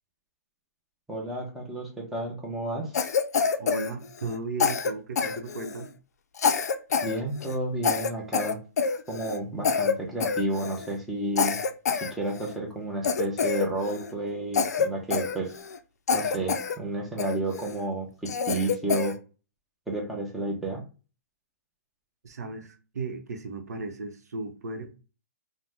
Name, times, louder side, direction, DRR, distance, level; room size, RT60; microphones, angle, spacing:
voice 1, 1.1-2.9 7.0-8.6 9.1-11.6 12.1-15.5 16.1-19.2 19.9-20.8, right 2 dB, ahead, 0.5 m, -31 dB
Cough, 2.9-4.4 4.6-5.9 6.4-7.2 7.4-7.6 7.8-9.4 9.6-10.0 10.2-10.9 11.4-12.6 13.0-14.1 14.5-15.8 16.1-16.8 17.2-17.7 18.3-19.2, left 6 dB, 90° left, 0.4 m, -27 dB
voice 2, 3.6-5.9 22.2-24.9, right 3 dB, 90° right, 0.6 m, -36 dB
2.7 x 2.0 x 3.3 m
hypercardioid pair, 170°, 9 cm